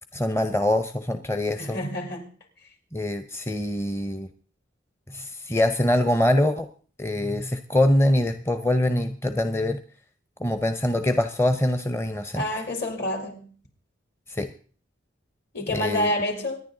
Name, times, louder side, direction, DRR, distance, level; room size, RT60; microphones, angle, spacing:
voice 1, 0.1-1.8 2.9-4.3 5.1-6.7 7.0-9.8 10.4-12.5 14.3-14.5 15.7-16.1, left 1 dB, 15° left, 9 dB, 0.7 m, -24 dB
voice 2, 1.6-2.3 12.3-13.5 15.5-16.6, left 1 dB, 60° left, 4 dB, 3.6 m, -28 dB
24.5 x 10.5 x 3.9 m, 0.42 s
head